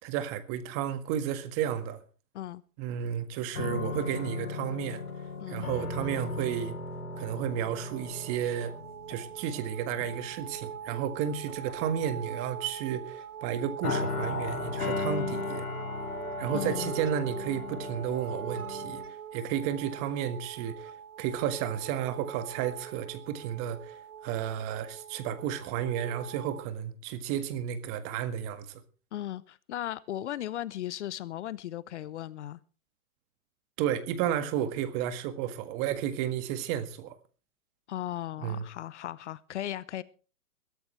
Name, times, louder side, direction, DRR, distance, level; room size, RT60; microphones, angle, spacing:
voice 1, 0.0-2.0 2.8-5.0 5.5-6.7 7.2-8.7 9.1-15.6 16.4-19.0 19.3-20.9 21.2-28.8 33.8-37.2 38.4-38.6, right 9 dB, 30° right, 1.7 m, -32 dB
sound 1, 3.5-9.6 10.0-10.3 11.2-12.0 13.8-19.0, left 3 dB, 80° left, 7.4 m, -36 dB
sound 2, 7.1-26.6, right 8 dB, 80° right, 1.5 m, -43 dB
voice 2, 16.5-16.9 29.1-32.6 37.9-40.0, left 12 dB, 50° left, 0.8 m, -36 dB
22.0 x 13.0 x 3.2 m
hypercardioid pair, 140°, 44 cm